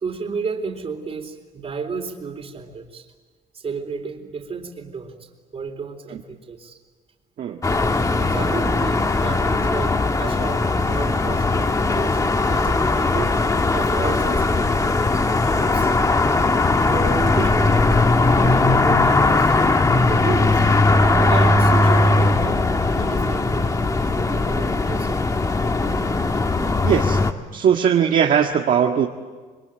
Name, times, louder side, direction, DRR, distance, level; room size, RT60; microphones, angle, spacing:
voice 1, 0.0-3.1 3.5-6.8 8.1-12.2 12.5-13.4 13.7-15.9 16.9-18.0 18.5-19.6 20.1-20.7 21.3-22.7 22.9-23.9 24.2-25.3 28.4-28.5, right 5 dB, 35° right, 5 dB, 3.9 m, -32 dB
sound 1, 7.6-27.3, left 3 dB, 20° left, 1.4 m, -19 dB
voice 2, 26.8-27.2 27.5-29.1, right 8 dB, 55° right, 1 dB, 1.7 m, -19 dB
28.0 x 22.0 x 9.1 m, 1.4 s
cardioid pair, 110°, 17 cm